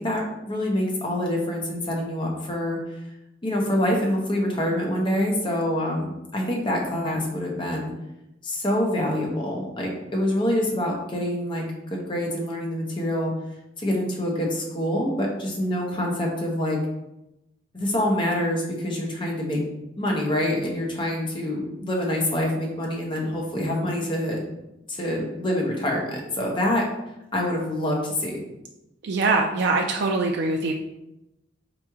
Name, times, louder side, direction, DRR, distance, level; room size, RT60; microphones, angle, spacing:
voice 1, 0.0-2.8 3.4-7.9 8.4-11.6 11.9-13.3 13.8-16.8 17.7-19.6 20.0-24.4 24.9-26.8 27.3-28.4, left 1 dB, 25° left, -1 dB, 0.8 m, -26 dB
voice 2, 29.0-30.7, right 3 dB, 65° right, 2 dB, 0.4 m, -23 dB
4.2 x 3.0 x 3.5 m, 0.91 s
head